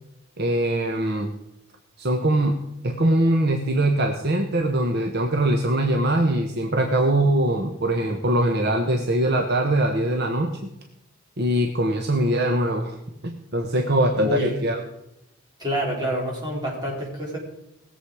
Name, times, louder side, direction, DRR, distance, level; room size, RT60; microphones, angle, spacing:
voice 1, 0.4-1.3 2.0-2.5 2.8-10.5 11.4-13.0 13.2-14.8, right 1 dB, 50° right, 4 dB, 1.1 m, -22 dB
voice 2, 14.1-14.6 15.6-17.4, equal, 20° right, -4 dB, 4.5 m, -27 dB
19.5 x 7.7 x 4.9 m, 0.85 s
head